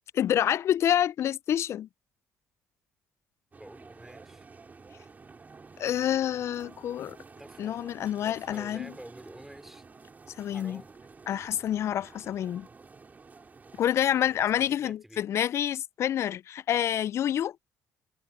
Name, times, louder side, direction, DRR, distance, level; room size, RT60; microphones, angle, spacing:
voice 1, 0.1-1.9 5.8-7.2 7.6-8.9 10.4-10.8 11.3-12.7 13.8-17.6, left 10 dB, 55° left, 0.3 m, -27 dB
sound 1, 3.5-14.8, right 4 dB, 30° right, 5.4 m, -51 dB
voice 2, 3.6-4.5 7.4-7.8 8.2-9.8 10.5-10.9 14.5-15.3, right 1 dB, 5° right, 3.9 m, -49 dB
supercardioid pair, 70°, 6 cm